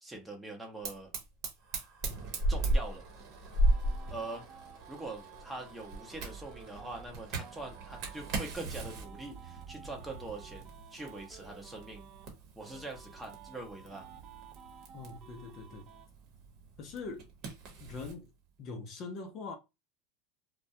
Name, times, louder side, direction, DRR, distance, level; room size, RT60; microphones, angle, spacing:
voice 1, 0.0-1.1 2.5-3.0 4.1-4.4 4.9-12.0 12.6-14.1, right 2 dB, 5° right, 0.7 m, -43 dB
Fire, 0.8-18.2, right 1 dB, 50° right, 0.9 m, -37 dB
sound 1, 2.9-7.1 7.4-12.3 12.6-16.1, right 7 dB, 35° right, 0.5 m, -54 dB
voice 2, 14.9-15.9 16.8-17.3 17.8-18.3 18.6-19.5, left 4 dB, 40° left, 0.6 m, -42 dB
2.2 x 2.1 x 2.7 m
supercardioid pair, 130°, 0 cm